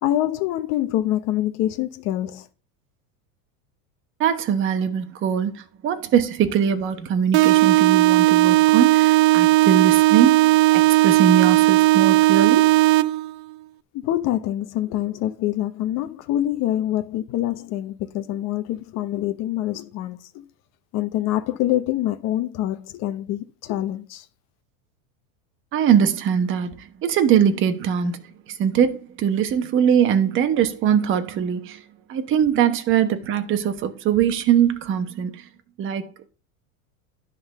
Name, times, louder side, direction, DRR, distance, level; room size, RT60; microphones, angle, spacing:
voice 1, 0.0-2.4 13.9-20.4 20.9-24.2, left 13 dB, 40° left, 1.0 m, -25 dB
voice 2, 4.2-12.8 25.7-28.2 28.5-31.8 32.1-35.4 35.8-36.3, right 8 dB, 30° right, 1.0 m, -22 dB
sound 1, 7.3-13.3, right 18 dB, 55° right, 0.5 m, -16 dB
10.5 x 4.0 x 6.5 m
supercardioid pair, 155°, 41 cm